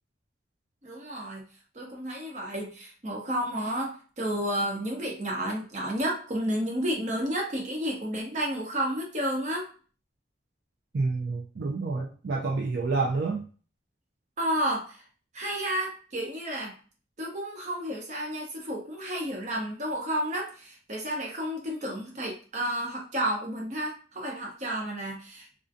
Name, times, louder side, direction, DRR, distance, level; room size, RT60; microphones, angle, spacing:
voice 1, 0.8-1.5 1.7-9.7 14.4-15.0 15.3-16.7 17.2-25.6, equal, 40° right, 0 dB, 0.8 m, -31 dB
voice 2, 10.9-13.4, right 3 dB, 65° right, -1 dB, 0.4 m, -28 dB
2.5 x 2.2 x 2.5 m, 0.39 s
head